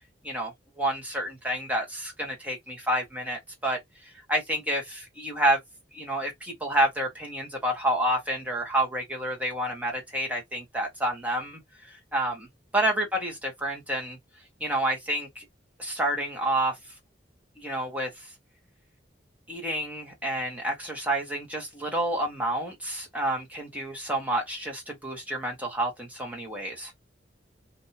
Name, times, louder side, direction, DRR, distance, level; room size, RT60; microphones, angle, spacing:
voice 1, 0.2-3.8 4.3-5.6 5.9-11.6 11.9-12.5 12.7-14.2 14.6-15.4 15.8-16.8 17.6-18.1 19.5-26.9, right 1 dB, 10° right, 1.3 m, -29 dB
3.0 x 2.6 x 2.8 m
head